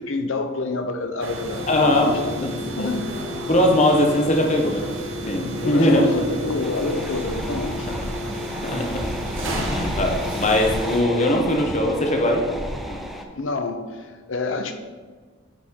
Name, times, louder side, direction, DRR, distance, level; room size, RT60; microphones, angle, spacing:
voice 1, 0.0-3.1 5.6-7.9 13.4-14.7, left 3 dB, 70° left, 6 dB, 0.7 m, -28 dB
sound 1, 1.2-11.0, equal, 80° right, 1.1 m, -31 dB
voice 2, 1.7-2.5 2.8-2.9 3.5-5.0 5.3-6.2 7.9-8.0 8.6-9.0 9.7-12.5 12.9-13.0, left 1 dB, 35° left, 1 dB, 1.0 m, -20 dB
sound 2, 6.6-13.2, equal, ahead, 0.5 m, -32 dB
8.5 x 4.9 x 3.7 m, 1.4 s
head